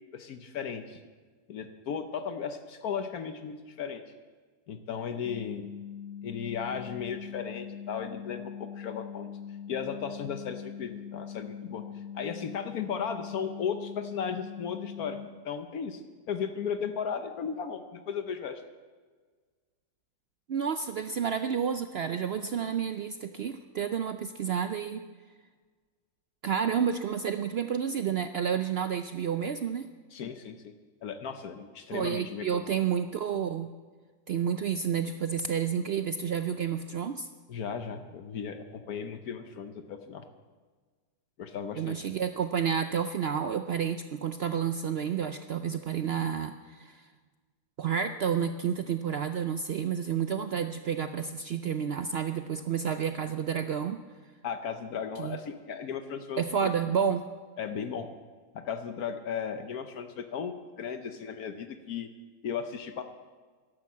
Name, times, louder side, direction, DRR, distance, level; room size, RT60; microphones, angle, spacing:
voice 1, 0.1-1.0 1.5-4.0 4.7-5.7 6.2-9.3 9.7-11.8 12.1-16.0 16.3-18.6 30.1-30.7 31.0-32.8 37.5-40.2 41.4-42.1 54.4-56.7 57.6-58.1 58.5-62.1 62.4-63.0, left 7 dB, 70° left, 8 dB, 1.3 m, -36 dB
sound 1, 5.2-15.3, left 8 dB, 50° left, 1.3 m, -42 dB
voice 2, 20.5-25.0 26.4-29.9 31.9-33.7 34.3-37.3 41.8-47.0 47.8-54.0 55.2-55.4 56.4-57.2, right 7 dB, 80° right, 9 dB, 0.5 m, -30 dB
12.0 x 11.5 x 7.3 m, 1.5 s
omnidirectional pair, 1.7 m